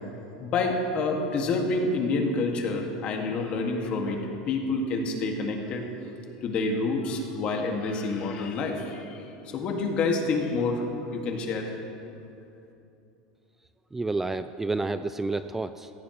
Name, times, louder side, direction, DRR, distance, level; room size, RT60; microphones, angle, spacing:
voice 1, 0.4-5.9 6.4-10.9 11.1-11.7, left 3 dB, 45° left, 2 dB, 2.0 m, -28 dB
voice 2, 13.9-15.9, right 3 dB, 10° right, 11 dB, 0.4 m, -30 dB
17.5 x 15.5 x 3.2 m, 2.8 s
supercardioid pair, 110°, 3 cm